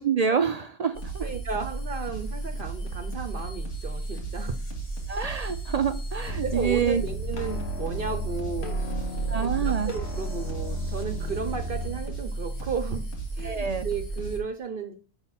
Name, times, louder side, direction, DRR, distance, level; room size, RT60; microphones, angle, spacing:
voice 1, 0.0-1.3 5.1-7.0 9.3-9.9 13.4-13.9, right 7 dB, 70° right, 9 dB, 0.3 m, -27 dB
sound 1, 0.9-14.4, right 2 dB, 75° left, 2.3 m, -34 dB
voice 2, 1.2-4.5 6.4-13.0 13.3-14.9, right 5 dB, 55° right, 8 dB, 0.8 m, -34 dB
sound 2, 6.3-12.0, right 1 dB, 60° left, 1.6 m, -33 dB
6.7 x 4.4 x 5.7 m, 0.39 s
omnidirectional pair, 1.3 m